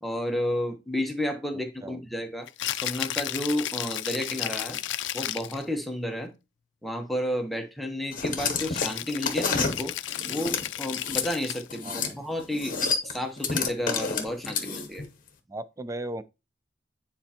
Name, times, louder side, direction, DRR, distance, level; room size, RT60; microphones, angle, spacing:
voice 1, 0.0-2.5 2.8-4.8 5.1-6.3 6.8-9.9 10.3-12.8 13.0-15.0, left 1 dB, ahead, 0.9 m, -31 dB
Rattle (instrument), 2.5-5.6 8.6-11.8, left 13 dB, 85° left, 0.4 m, -34 dB
sound 1, 8.1-11.3 11.7-12.1 12.4-15.0, left 5 dB, 50° left, 0.9 m, -29 dB
voice 2, 11.8-12.2 15.5-16.2, right 1 dB, 15° right, 0.4 m, -36 dB
9.6 x 4.3 x 2.9 m
head